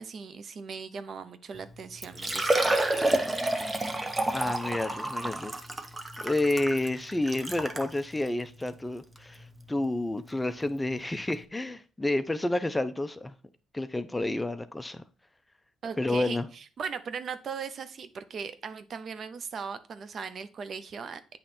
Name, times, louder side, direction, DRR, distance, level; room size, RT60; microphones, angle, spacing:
voice 1, 0.0-2.8 15.8-21.4, right 6 dB, 55° right, 0.6 m, -38 dB
Liquid, 1.6-1.7 2.0-7.9 8.6-8.7 9.2-9.3 10.9-11.0 11.2-11.3, right 1 dB, 20° right, 0.8 m, -29 dB
voice 2, 4.3-5.5 6.2-13.3 13.7-15.0 16.0-16.5, left 2 dB, 15° left, 0.5 m, -30 dB
8.6 x 3.1 x 4.3 m
cardioid pair, 90°, 0 cm